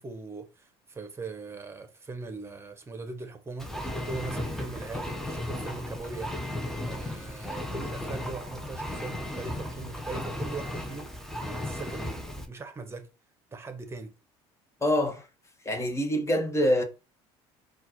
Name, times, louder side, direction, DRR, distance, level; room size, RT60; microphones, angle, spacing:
voice 1, 0.0-3.7 4.0-6.3 6.8-13.1 13.5-14.1, right 3 dB, 20° right, 1.0 m, -40 dB
Engine, 3.6-12.5, left 1 dB, 5° left, 0.9 m, -35 dB
voice 2, 14.8-15.2 15.6-16.8, equal, 20° left, 1.2 m, -25 dB
4.3 x 2.5 x 4.5 m
supercardioid pair, 90°, 13 cm